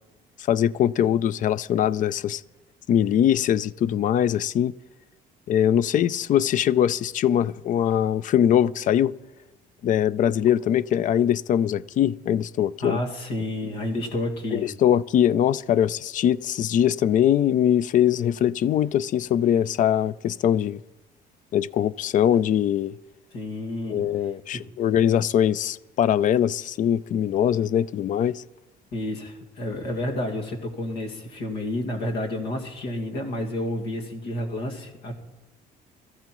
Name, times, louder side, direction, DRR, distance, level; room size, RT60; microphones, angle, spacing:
voice 1, 0.5-2.4 2.9-4.7 5.5-9.1 9.8-13.0 14.5-20.8 21.5-22.9 23.9-28.4, left 10 dB, 50° left, 0.4 m, -22 dB
voice 2, 12.8-14.7 23.3-24.0 24.5-24.6 28.9-35.1, left 1 dB, 80° left, 2.1 m, -30 dB
21.5 x 14.0 x 3.0 m
cardioid pair, 110°, 17 cm